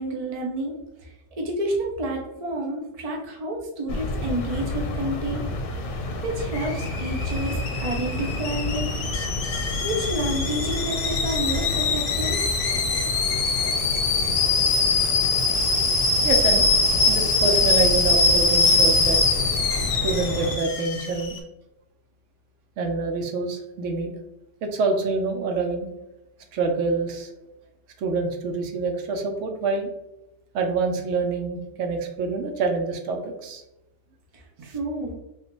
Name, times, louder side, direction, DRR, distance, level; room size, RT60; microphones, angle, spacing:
voice 1, 0.0-5.4 6.2-8.9 9.2-9.3 9.8-12.5 34.3-35.1, right 1 dB, 55° right, 0 dB, 0.4 m, -30 dB
sound 1, 3.9-20.6, left 1 dB, 85° left, 1.0 m, -30 dB
Alarm / Boiling, 6.6-21.4, left 3 dB, 65° left, 0.8 m, -23 dB
voice 2, 16.2-16.7 17.1-19.2 20.0-21.4 22.8-24.1 24.6-25.9 26.5-27.3 28.0-29.9 30.5-33.6, right 4 dB, 75° right, 3 dB, 0.9 m, -26 dB
3.4 x 2.4 x 2.9 m, 0.91 s
omnidirectional pair, 1.3 m